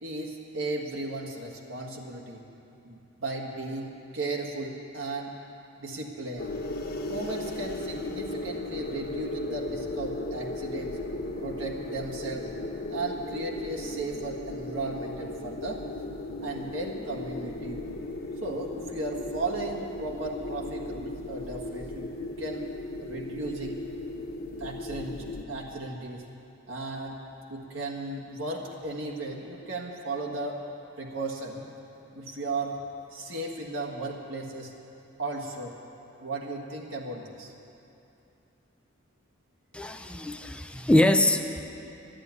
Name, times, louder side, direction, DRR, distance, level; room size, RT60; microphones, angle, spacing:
voice 1, 0.0-2.4 2.8-5.3 5.8-6.6 7.1-11.0 11.4-12.5 12.9-15.8 16.4-17.8 18.4-22.7 23.0-23.8 24.6-26.2 26.7-27.2 27.5-30.6 31.0-31.7 32.1-32.8 33.1-34.7 35.2-35.8 36.2-37.5, right 2 dB, 75° right, -2 dB, 1.6 m, -35 dB
sound 1, 6.4-25.4, left 2 dB, 50° left, 1.3 m, -36 dB
voice 2, 39.7-41.6, left 1 dB, 5° left, 6 dB, 0.5 m, -23 dB
12.0 x 11.5 x 9.5 m, 2.8 s
head